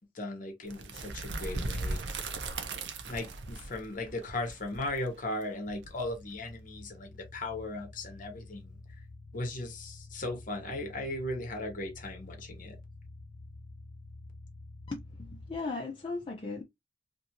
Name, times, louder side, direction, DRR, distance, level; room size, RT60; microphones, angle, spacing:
voice 1, 0.1-2.0 3.1-8.8 9.3-12.8, left 2 dB, 50° left, 0.9 m, -37 dB
sound 1, 0.7-6.5, right 2 dB, 80° right, 0.6 m, -38 dB
sound 2, 5.6-15.6, left 2 dB, 90° left, 0.6 m, -49 dB
voice 2, 14.9-16.6, left 3 dB, 30° left, 0.5 m, -37 dB
2.6 x 2.5 x 2.8 m
head